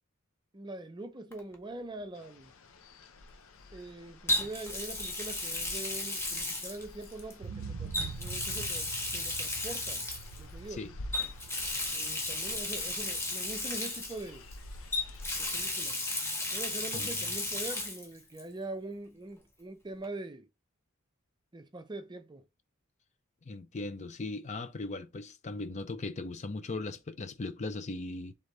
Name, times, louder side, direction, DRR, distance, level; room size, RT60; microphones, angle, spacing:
voice 1, 0.5-2.5 3.7-10.0 10.4-10.8 11.9-14.5 15.4-16.0 16.5-20.5 21.5-22.4, right 2 dB, 20° right, 0.5 m, -43 dB
Water tap faucet, 1.3-1.5 4.3-7.3 7.9-10.4 11.1-14.5 14.9-18.1 18.4-18.5 20.0-20.1, left 2 dB, 10° left, 0.9 m, -34 dB
sound 1, 2.1-15.7, left 2 dB, 70° left, 0.7 m, -50 dB
sound 2, 7.4-15.3 15.7-15.8, right 5 dB, 85° right, 0.4 m, -46 dB
voice 2, 23.4-28.3, left 3 dB, 35° left, 0.5 m, -38 dB
3.6 x 3.3 x 3.9 m
head